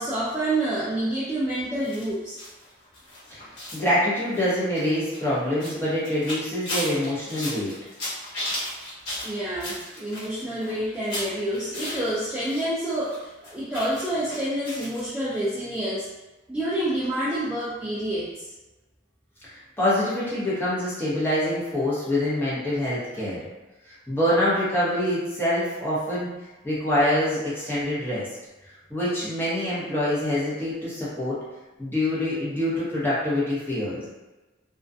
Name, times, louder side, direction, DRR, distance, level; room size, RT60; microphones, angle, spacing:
voice 1, 0.0-2.4 9.2-16.1 16.5-18.5, right 1 dB, 5° right, -11 dB, 0.4 m, -28 dB
sound 1, 1.8-12.7 12.9-15.0 15.4-15.5 15.8-15.9, left 1 dB, 65° left, 1.1 m, -36 dB
voice 2, 3.3-7.7 19.5-23.4 23.8-26.3 26.6-28.3 28.9-31.4 31.8-34.1, left 1 dB, 10° left, -10 dB, 0.8 m, -25 dB
2.4 x 2.2 x 2.5 m, 1.1 s
head